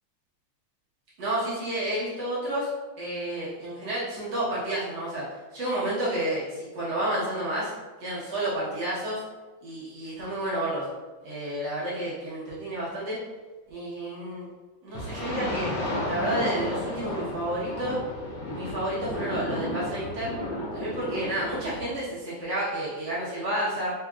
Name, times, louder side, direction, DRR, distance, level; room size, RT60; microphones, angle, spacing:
voice 1, 1.2-2.7 3.0-5.2 5.5-7.7 8.0-9.2 9.6-10.9 11.2-13.2 13.7-14.5 14.8-15.7 16.1-18.0 18.5-20.3 20.7-23.9, right 1 dB, 60° right, -9 dB, 1.3 m, -30 dB
sound 1, 14.9-21.9, left 1 dB, 65° left, 1.4 m, -33 dB
4.8 x 2.8 x 2.3 m, 1.2 s
omnidirectional pair, 3.5 m